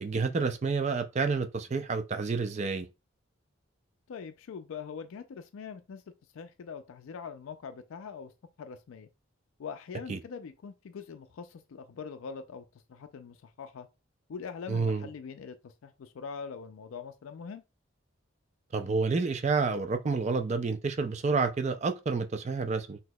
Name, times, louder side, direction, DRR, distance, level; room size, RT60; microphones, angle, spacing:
voice 1, 0.0-2.9 10.1-10.2 14.7-15.1 18.7-23.0, right 4 dB, 35° right, 0.3 m, -29 dB
voice 2, 4.1-6.0 6.3-8.3 8.6-9.1 9.6-13.9 14.3-17.6, left 6 dB, 80° left, 0.4 m, -43 dB
6.0 x 2.7 x 2.2 m
head